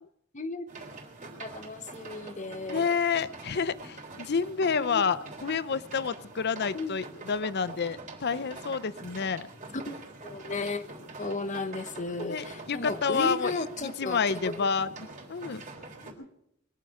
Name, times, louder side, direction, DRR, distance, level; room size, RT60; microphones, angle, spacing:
voice 1, 0.3-0.7 1.4-3.0 4.8-5.1 6.7-7.0 9.7-9.9 10.2-10.9 11.2-14.7 16.0-16.1, left 3 dB, 35° left, 10 dB, 1.0 m, -35 dB
sound 1, 0.7-16.1, right 3 dB, 40° right, 3.4 m, -45 dB
voice 2, 2.7-9.5 12.3-13.5 13.8-15.6, left 5 dB, 55° left, 16 dB, 0.6 m, -29 dB
22.0 x 7.6 x 8.5 m, 0.75 s
head